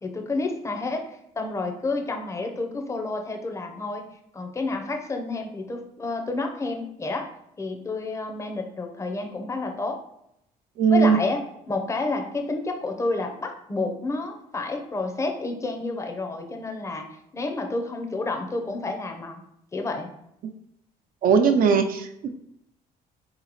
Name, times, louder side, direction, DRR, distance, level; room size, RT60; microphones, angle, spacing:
voice 1, 0.0-4.0 4.3-7.3 7.6-10.0 10.9-17.1 17.3-19.4 19.7-20.1, left 3 dB, 15° left, 3 dB, 0.6 m, -30 dB
voice 2, 10.8-11.2 21.2-22.3, right 6 dB, 55° right, 6 dB, 0.5 m, -19 dB
4.0 x 3.0 x 4.0 m, 0.78 s
cardioid pair, 110°, 17 cm